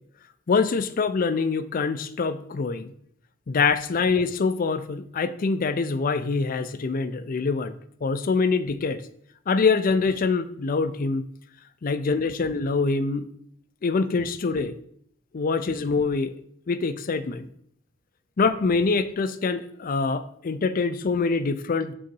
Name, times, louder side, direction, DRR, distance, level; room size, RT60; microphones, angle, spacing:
voice 1, 0.5-2.9 3.5-7.7 8.0-9.0 9.5-11.3 11.8-13.3 13.8-14.8 15.3-16.3 16.7-17.5 18.4-21.9, left 4 dB, 45° left, 13 dB, 0.4 m, -24 dB
6.7 x 3.9 x 5.3 m, 0.67 s
head